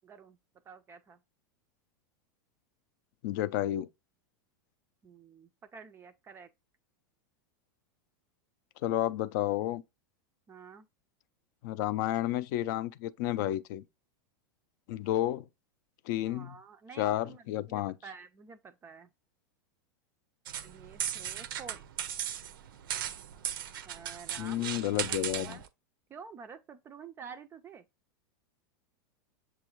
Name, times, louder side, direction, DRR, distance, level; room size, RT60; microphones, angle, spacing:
voice 1, 0.0-0.4 0.7-1.2 5.0-6.5 10.5-10.9 16.2-19.1 20.6-21.8 23.8-24.7 25.0-25.2 25.4-25.6 26.1-27.9, right 6 dB, 20° right, 0.3 m, -49 dB
voice 2, 3.2-3.9 8.8-9.8 11.6-13.9 14.9-15.5 16.1-16.6 17.0-17.9 24.4-25.6, left 13 dB, 60° left, 0.4 m, -31 dB
sound 1, 20.5-25.7, right 10 dB, 80° right, 0.5 m, -37 dB
7.0 x 2.4 x 3.0 m
supercardioid pair, 130°, 11 cm